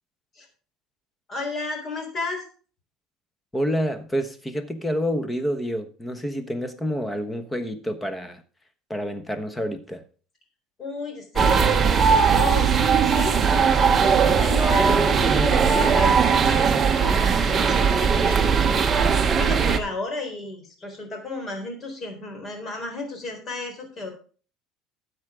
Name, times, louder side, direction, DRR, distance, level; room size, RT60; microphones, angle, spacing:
voice 1, 1.3-2.4 10.8-11.8 12.1-12.7 13.0-16.2 16.5-18.7 19.4-24.1, left 3 dB, 30° left, 3.9 m, -33 dB
voice 2, 3.5-8.4 8.9-10.0, equal, 10° left, 1.1 m, -28 dB
sound 1, 11.4-19.8, right 6 dB, 25° right, 1.0 m, -19 dB
13.0 x 8.1 x 3.6 m
cardioid pair, 150°, 0 cm